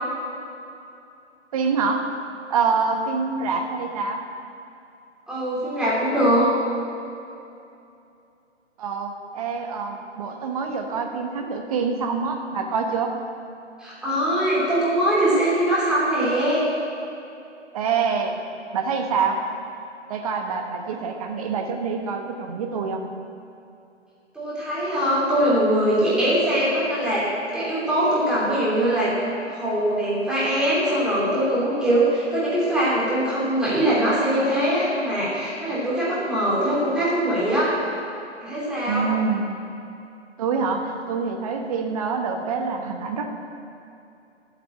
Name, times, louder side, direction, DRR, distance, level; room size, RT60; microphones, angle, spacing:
voice 1, 1.5-2.1 2.5-4.2 8.8-13.1 17.7-18.4 18.7-19.4 20.1-23.1 38.9-39.5 40.4-43.3, right 5 dB, 30° right, 3 dB, 1.2 m, -26 dB
voice 2, 5.3-6.5 13.8-16.7 24.3-27.2 27.5-29.1 29.5-37.7 38.4-39.1, right 1 dB, ahead, -9 dB, 3.1 m, -22 dB
12.5 x 8.0 x 8.7 m, 2.7 s
figure-of-eight pair, 140°, 36 cm